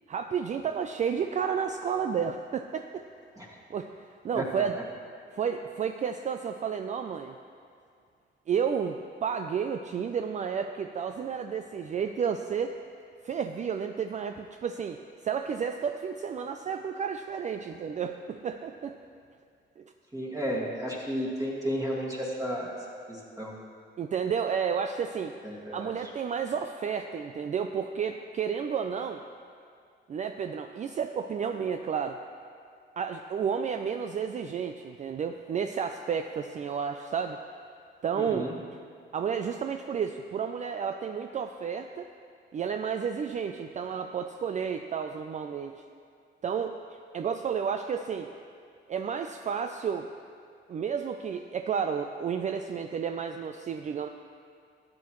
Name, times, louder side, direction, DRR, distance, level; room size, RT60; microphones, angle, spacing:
voice 1, 0.1-3.1 3.7-4.8 5.3-7.4 8.5-12.7 13.2-15.0 15.2-19.0 19.8-19.9 24.0-25.3 25.7-29.2 30.1-32.2 33.0-37.4 38.0-38.5 39.1-42.1 42.5-45.8 46.4-48.3 48.9-50.1 50.7-54.1, right 7 dB, 40° right, 6 dB, 0.4 m, -31 dB
voice 2, 20.1-22.7 23.1-23.5 25.4-25.9 38.2-38.6, equal, 20° right, -4 dB, 2.1 m, -33 dB
13.0 x 8.4 x 3.1 m, 2.3 s
cardioid pair, 90°, 20 cm